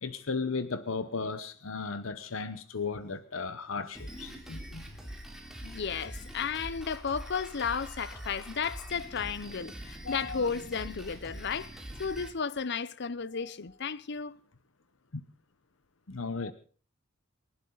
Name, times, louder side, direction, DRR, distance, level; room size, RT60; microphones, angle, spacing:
voice 1, 0.0-4.8 15.1-15.2 16.1-16.5, left 4 dB, 80° left, 1.0 m, -35 dB
Drum kit, 3.9-12.3, equal, 5° right, 3.3 m, -44 dB
voice 2, 5.6-14.4 16.3-16.5, left 6 dB, 55° left, 0.7 m, -34 dB
29.0 x 11.5 x 3.9 m
head